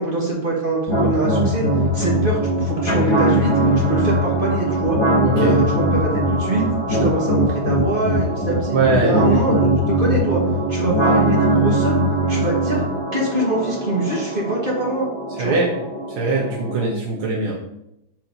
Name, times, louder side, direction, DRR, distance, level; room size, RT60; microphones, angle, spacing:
voice 1, 0.0-1.6 1.9-5.0 5.3-10.4 10.7-12.0 12.3-12.8 13.1-15.1 15.4-15.6, right 2 dB, 30° right, -3 dB, 1.3 m, -24 dB
sound 1, 0.9-16.9, right 1 dB, 15° left, 1.2 m, -21 dB
voice 2, 5.2-5.6 8.7-9.2 15.4-15.7 16.2-17.6, right 3 dB, 70° right, -4 dB, 2.0 m, -21 dB
4.6 x 4.6 x 5.2 m, 0.80 s
omnidirectional pair, 2.3 m